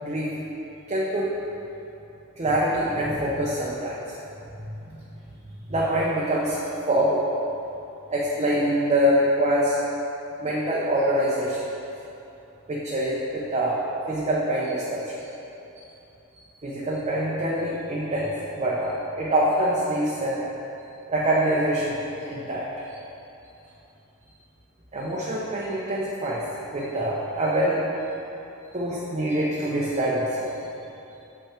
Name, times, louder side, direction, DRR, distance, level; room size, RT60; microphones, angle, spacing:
voice 1, 0.0-0.4 0.9-1.3 2.4-4.0 4.5-5.0 5.7-6.6 6.9-7.2 8.1-9.8 10.4-11.7 12.7-13.8 14.1-15.3 16.6-20.4 21.1-22.0 22.3-23.0 24.9-26.4 26.7-27.8 28.7-30.6, right 1 dB, 30° right, -6 dB, 0.8 m, -25 dB
7.0 x 5.6 x 4.3 m, 2.9 s
head